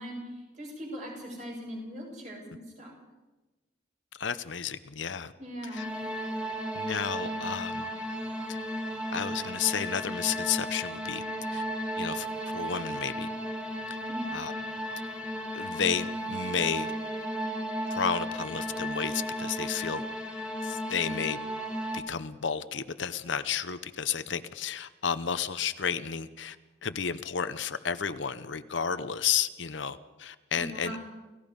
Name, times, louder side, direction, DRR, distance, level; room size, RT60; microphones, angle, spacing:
voice 1, 0.0-3.0 5.4-5.9 14.1-14.3 30.5-31.0, equal, 40° right, -1 dB, 7.8 m, -40 dB
voice 2, 4.2-5.3 5.7-5.8 6.7-7.9 8.5-8.6 9.1-11.2 11.5-11.6 12.0-12.3 12.5-13.3 14.3-14.5 15.5-16.9 17.9-20.0 20.6-21.4 21.9-26.6 26.8-31.0, left 7 dB, 70° left, 12 dB, 0.8 m, -32 dB
sound 1, 5.8-22.0, equal, 5° right, 1.8 m, -34 dB
29.0 x 17.0 x 5.3 m, 1.1 s
head